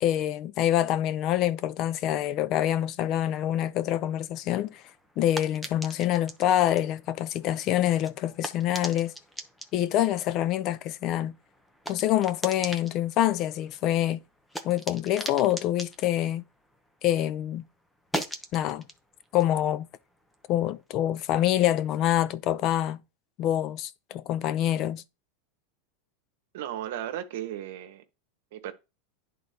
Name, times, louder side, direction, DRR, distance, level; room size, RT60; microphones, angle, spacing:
voice 1, 0.0-4.8 5.2-9.1 9.7-11.4 11.9-14.2 14.6-16.4 17.0-17.6 18.5-18.8 19.3-19.9 20.5-23.0 23.4-25.0, left 12 dB, 45° left, 0.5 m, -26 dB
sound 1, 4.5-17.3 17.6-20.8, equal, 5° left, 0.9 m, -42 dB
voice 2, 26.5-28.0 28.5-28.7, right 11 dB, 70° right, 1.1 m, -35 dB
11.0 x 3.9 x 2.8 m
supercardioid pair, 130°, 0 cm